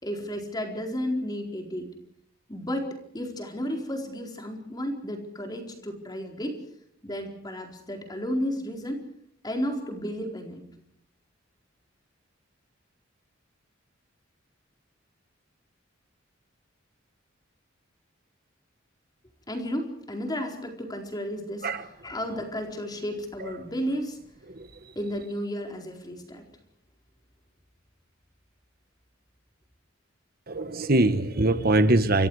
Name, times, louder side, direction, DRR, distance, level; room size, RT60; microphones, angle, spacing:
voice 1, 0.0-1.9 2.5-6.6 7.0-9.0 9.4-10.6 19.5-21.7 22.0-24.2 25.0-26.4, equal, 20° left, 3 dB, 4.3 m, -32 dB
voice 2, 30.5-32.3, right 2 dB, 50° right, 10 dB, 1.3 m, -23 dB
29.0 x 25.5 x 4.9 m, 0.68 s
head